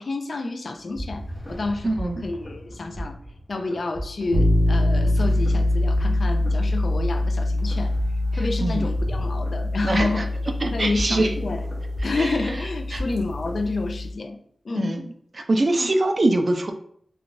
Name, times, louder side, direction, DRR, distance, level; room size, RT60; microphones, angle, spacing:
voice 1, 0.0-3.2 3.5-7.9 8.3-10.3 10.7-11.6 12.0-14.4 14.6-15.1 15.8-15.9, left 3 dB, 60° left, 6 dB, 0.3 m, -29 dB
sound 1, 0.7-13.7, equal, 10° left, 0.8 m, -37 dB
voice 2, 1.8-2.3 8.3-8.9 9.8-10.2 10.6-11.3 12.2-12.3 12.9-13.0 14.8-15.0 15.5-16.7, right 2 dB, 45° right, 5 dB, 0.4 m, -23 dB
sound 2, 4.3-14.1, left 1 dB, 90° left, 0.7 m, -24 dB
2.4 x 2.3 x 3.8 m, 0.63 s
wide cardioid pair, 95°, 0 cm